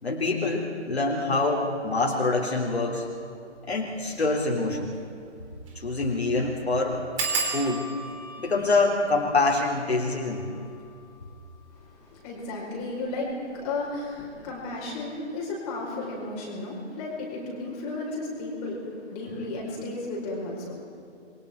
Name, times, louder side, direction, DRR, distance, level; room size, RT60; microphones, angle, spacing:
voice 1, 0.0-3.1 3.7-4.9 5.7-7.0 7.5-7.9 8.4-10.5, left 3 dB, 60° left, -1 dB, 3.5 m, -25 dB
sound 1, 4.0-4.2 4.6-4.7 4.9-5.0 5.6-5.8 6.1-6.2 7.2-12.4 13.1-13.6 14.0-14.3 14.6-14.7, right 3 dB, 25° right, 3.4 m, -35 dB
voice 2, 11.8-20.8, left 2 dB, 20° left, -4 dB, 5.0 m, -34 dB
28.0 x 22.5 x 4.6 m, 2.5 s
figure-of-eight pair, 140°, 36 cm